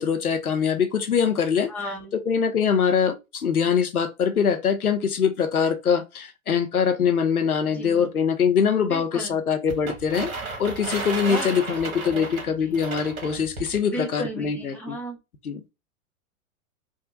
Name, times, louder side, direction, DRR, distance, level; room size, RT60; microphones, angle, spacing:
voice 1, 0.0-1.7 2.1-10.3 10.6-15.0 15.4-15.6, left 7 dB, 85° left, 0.7 m, -23 dB
voice 2, 1.7-2.1 7.7-8.1 8.9-9.4 11.2-11.5 12.1-12.3 12.7-12.8 13.9-15.2, equal, 5° left, 0.7 m, -34 dB
sound 1, 9.7-13.8, right 3 dB, 70° right, 1.2 m, -33 dB
3.6 x 2.1 x 2.6 m
figure-of-eight pair, 100°, 43 cm